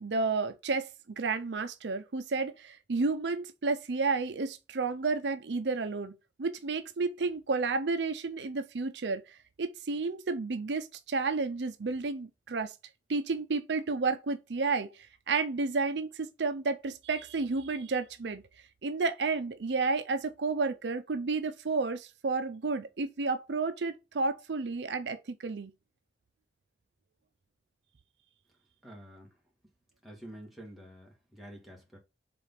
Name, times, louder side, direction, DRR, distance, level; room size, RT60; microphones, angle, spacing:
voice 1, 0.0-12.7 13.1-18.4 18.8-25.7, right 4 dB, 75° right, 0.6 m, -31 dB
voice 2, 28.8-29.3 30.0-32.0, right 1 dB, ahead, 2.1 m, -48 dB
4.9 x 3.9 x 5.7 m
head